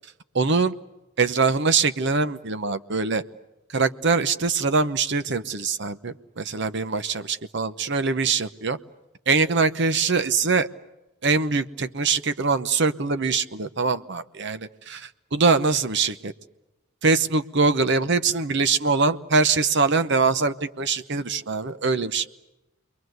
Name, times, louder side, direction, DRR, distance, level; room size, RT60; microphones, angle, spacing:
voice 1, 0.3-0.7 1.2-3.2 3.7-8.8 9.3-10.7 11.2-16.3 17.0-22.3, right 4 dB, 55° right, 12 dB, 1.0 m, -23 dB
29.5 x 22.5 x 8.0 m, 0.98 s
head